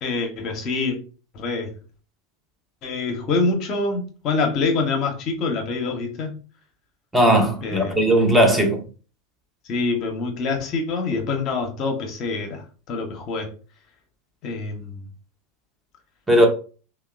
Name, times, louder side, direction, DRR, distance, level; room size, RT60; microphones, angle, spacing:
voice 1, 0.0-1.0 1.3-1.7 2.8-6.3 7.6-8.0 9.7-12.6 12.9-13.5 14.4-15.0, left 3 dB, 45° left, 0.7 m, -25 dB
voice 2, 7.1-8.8 16.3-16.5, equal, 10° right, 0.6 m, -17 dB
2.8 x 2.1 x 2.3 m
figure-of-eight pair, 85°, 0 cm